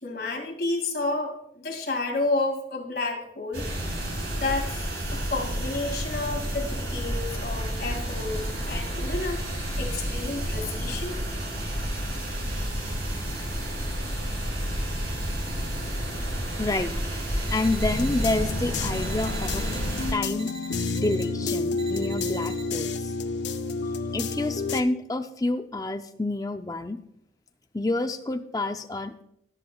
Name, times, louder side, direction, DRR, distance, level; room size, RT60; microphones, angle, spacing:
voice 1, 0.0-3.7 4.4-4.8 5.1-9.4 9.8-11.1, left 2 dB, 55° left, 0 dB, 2.3 m, -30 dB
sound 1, 3.5-20.1, equal, 70° right, 4.4 m, -30 dB
voice 2, 16.6-17.2 17.5-23.1 24.1-27.0 27.7-29.2, left 2 dB, 20° left, 8 dB, 0.5 m, -29 dB
sound 2, 17.5-18.3 18.9-19.8 20.4-21.2 21.8-22.6, right 3 dB, 35° right, 2.0 m, -43 dB
sound 3, 17.9-24.8, left 3 dB, 75° left, 0.6 m, -30 dB
18.5 x 7.6 x 2.3 m, 0.76 s
head